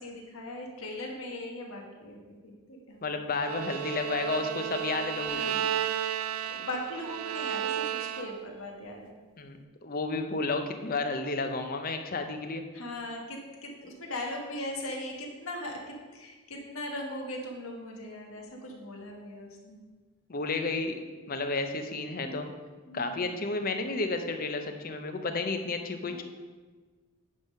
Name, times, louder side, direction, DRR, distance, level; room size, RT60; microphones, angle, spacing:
voice 1, 0.0-3.3 5.3-5.7 6.5-9.1 12.7-19.8 21.9-22.4 22.9-23.9 26.1-26.2, left 1 dB, 75° left, 0 dB, 1.3 m, -40 dB
voice 2, 3.0-5.5 9.4-12.6 20.3-20.9 21.3-22.5 22.9-26.2, left 3 dB, 40° left, 7 dB, 0.6 m, -32 dB
Bowed string instrument, 3.4-8.6, right 10 dB, 80° right, 0.3 m, -33 dB
9.6 x 3.6 x 5.5 m, 1.4 s
head